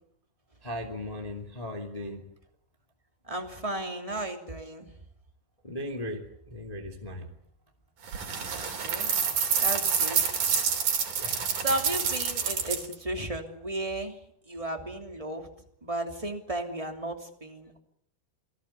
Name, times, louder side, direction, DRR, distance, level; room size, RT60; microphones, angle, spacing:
voice 1, 0.6-2.2 5.6-7.3 11.2-11.4, left 1 dB, 10° left, 3 dB, 2.2 m, -37 dB
voice 2, 3.3-4.9 8.5-9.1 9.6-10.4 11.6-14.2 14.5-15.5 15.8-17.8, right 1 dB, 10° right, 3 dB, 2.5 m, -34 dB
sound 1, 8.1-12.9, right 7 dB, 55° right, 4.5 m, -27 dB
28.0 x 19.0 x 8.4 m, 0.72 s
omnidirectional pair, 4.3 m